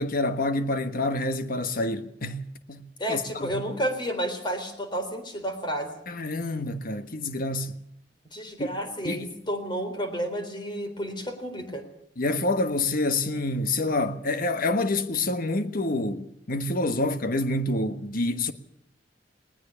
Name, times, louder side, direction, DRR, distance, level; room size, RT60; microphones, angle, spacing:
voice 1, 0.0-3.7 6.1-7.8 8.6-8.7 9.0-9.3 12.2-18.5, left 2 dB, 55° left, 1.4 m, -27 dB
voice 2, 3.0-5.9 8.3-11.8, equal, 25° left, 3.8 m, -31 dB
20.0 x 19.5 x 7.0 m
head